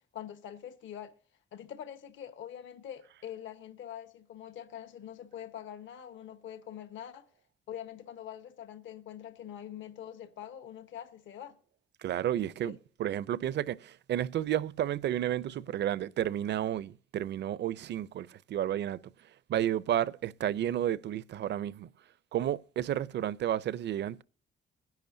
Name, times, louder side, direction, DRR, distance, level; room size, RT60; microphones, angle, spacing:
voice 1, 0.1-1.1 1.5-7.3 7.7-11.5 12.6-12.7, left 10 dB, 75° left, 1.3 m, -44 dB
voice 2, 12.0-19.0 19.5-21.9 22.3-24.2, right 11 dB, 60° right, 0.6 m, -32 dB
21.5 x 10.5 x 2.7 m
cardioid pair, 90°, 20 cm